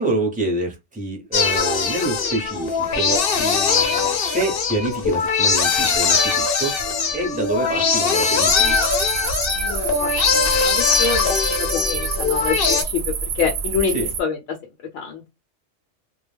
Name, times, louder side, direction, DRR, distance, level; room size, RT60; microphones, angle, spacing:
voice 1, 0.0-8.8 13.9-14.1, right 2 dB, 10° right, 0.6 m, -27 dB
sound 1, 1.3-12.8, left 5 dB, 55° left, 0.8 m, -21 dB
sound 2, 8.4-14.2, right 5 dB, 65° right, 0.8 m, -27 dB
voice 2, 9.6-14.4 14.9-15.3, left 6 dB, 85° left, 0.9 m, -27 dB
2.3 x 2.1 x 3.2 m
omnidirectional pair, 1.2 m